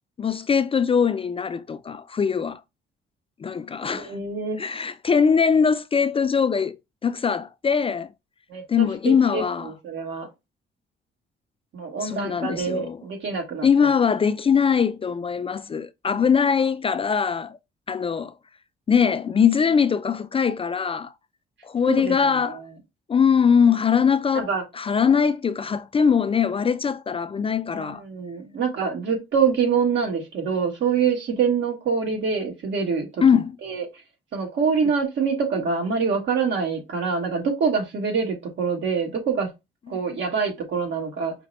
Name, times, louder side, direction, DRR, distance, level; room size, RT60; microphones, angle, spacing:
voice 1, 0.2-2.6 3.4-4.2 4.6-8.1 8.7-9.7 12.0-13.0 13.6-17.6 17.9-18.3 18.9-21.1 21.6-22.6 23.1-24.5 24.7-28.0 33.2-33.5 39.9-40.0, left 6 dB, 30° left, 0.4 m, -21 dB
voice 2, 3.8-4.6 8.5-8.6 9.0-10.3 11.7-13.7 21.9-22.5 24.3-24.6 27.7-33.2 33.6-33.9 34.3-39.5 39.9-41.3, right 5 dB, 70° right, 1.7 m, -25 dB
5.1 x 2.2 x 4.0 m
cardioid pair, 90°, 20 cm